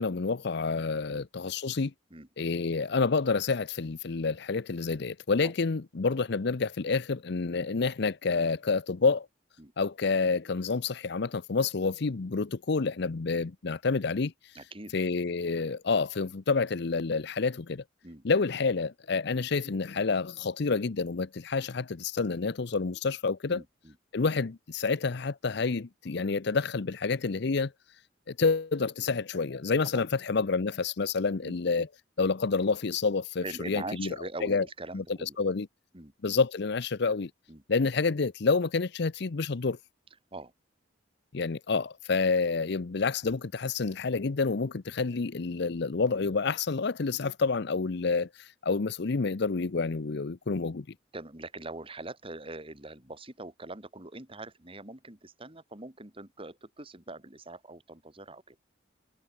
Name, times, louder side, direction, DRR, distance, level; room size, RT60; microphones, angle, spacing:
voice 1, 0.0-1.9 2.4-9.3 9.8-14.3 14.9-17.8 18.2-23.6 24.1-27.7 28.3-31.9 32.2-34.2 34.4-34.6 34.9-35.0 35.4-35.7 36.2-37.3 37.7-39.8 41.3-50.9, left 4 dB, 60° left, 0.7 m, -28 dB
voice 2, 14.5-14.9 18.0-18.2 23.5-24.0 29.9-30.0 31.4-31.9 33.4-35.4 35.9-36.1 37.5-37.6 40.3-40.5 51.1-58.6, right 2 dB, 30° right, 2.8 m, -43 dB
head